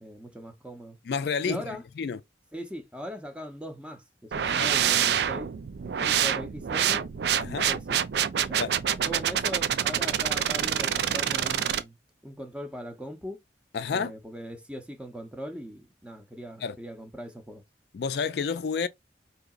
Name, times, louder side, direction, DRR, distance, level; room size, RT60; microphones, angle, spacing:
voice 1, 0.0-1.0 1.4-1.8 2.5-4.0 4.4-5.5 6.0-7.1 7.4-8.7 9.0-12.0 12.2-13.4 13.9-17.6, equal, 5° right, 0.7 m, -40 dB
voice 2, 1.1-1.6 2.0-2.2 4.4-4.7 7.4-7.7 8.6-8.7 13.7-14.1 16.6-16.8 17.9-18.9, left 5 dB, 60° left, 0.3 m, -29 dB
sound 1, 4.3-11.8, right 9 dB, 65° right, 0.4 m, -26 dB
4.9 x 2.8 x 2.4 m
head